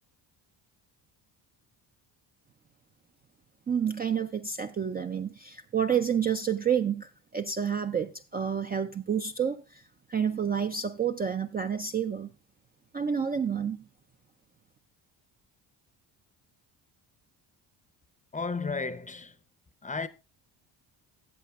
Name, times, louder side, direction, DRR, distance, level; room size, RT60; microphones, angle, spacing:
voice 1, 3.7-9.8 10.1-12.3 12.9-13.8, right 7 dB, 20° right, 0.4 m, -29 dB
voice 2, 18.3-19.4 19.8-20.1, left 4 dB, 15° left, 0.7 m, -33 dB
14.0 x 7.7 x 2.4 m
cardioid pair, 90°, 46 cm